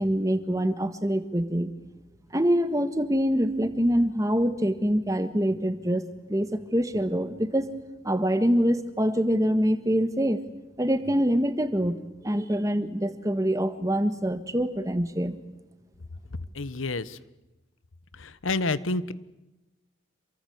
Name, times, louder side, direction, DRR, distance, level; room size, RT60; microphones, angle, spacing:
voice 1, 0.0-1.7 2.3-7.7 8.0-10.4 10.8-12.0 12.2-15.4, equal, 15° right, 11 dB, 1.6 m, -25 dB
voice 2, 16.3-17.2 18.1-19.1, left 2 dB, 90° left, 16 dB, 1.2 m, -29 dB
27.5 x 23.5 x 8.1 m, 1.0 s
head